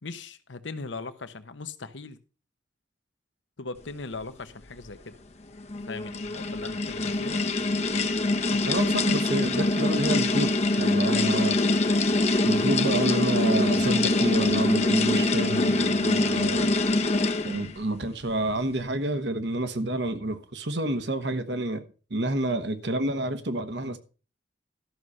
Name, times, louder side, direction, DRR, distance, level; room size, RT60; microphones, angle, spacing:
voice 1, 0.0-2.2 3.6-5.1 5.9-7.4 11.0-11.3 22.5-22.6, left 3 dB, 85° left, 1.0 m, -39 dB
sound 1, 5.6-17.7, left 2 dB, 35° left, 0.7 m, -24 dB
voice 2, 8.7-11.6 12.5-16.7 17.4-21.8 22.1-24.0, right 2 dB, 70° right, 1.2 m, -29 dB
13.0 x 6.4 x 5.5 m
head